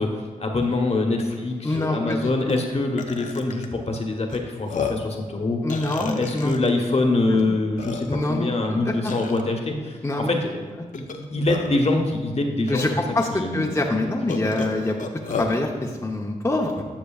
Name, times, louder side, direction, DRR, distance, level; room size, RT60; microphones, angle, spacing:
voice 1, 0.0-5.6 6.0-13.0 13.3-13.8, left 2 dB, 45° left, 2 dB, 1.1 m, -25 dB
Burping eructation, 1.2-1.3 1.7-1.9 2.5-2.6 3.0-3.7 4.3-4.4 4.7-5.1 5.7-6.7 7.4-7.5 7.8-8.3 9.1-9.4 10.9-11.8 12.7-12.8 13.2-13.3 14.3-15.6, left 5 dB, 60° left, 0.7 m, -32 dB
voice 2, 1.6-2.2 5.6-6.5 8.1-9.1 10.0-10.4 12.7-16.8, left 2 dB, 20° left, 0 dB, 0.8 m, -25 dB
10.5 x 6.4 x 2.4 m, 1.5 s
supercardioid pair, 40°, 15 cm